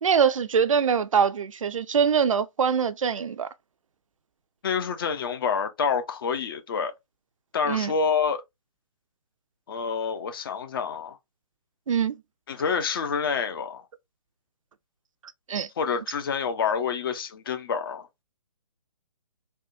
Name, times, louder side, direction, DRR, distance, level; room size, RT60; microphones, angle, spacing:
voice 1, 0.0-3.5 7.7-7.9 11.9-12.2 15.5-15.7, right 7 dB, 60° right, 0.4 m, -23 dB
voice 2, 4.6-6.9 7.5-8.4 9.7-11.2 12.5-13.8 15.8-18.1, left 6 dB, 40° left, 0.5 m, -27 dB
3.4 x 2.2 x 2.6 m
figure-of-eight pair, 135°, 19 cm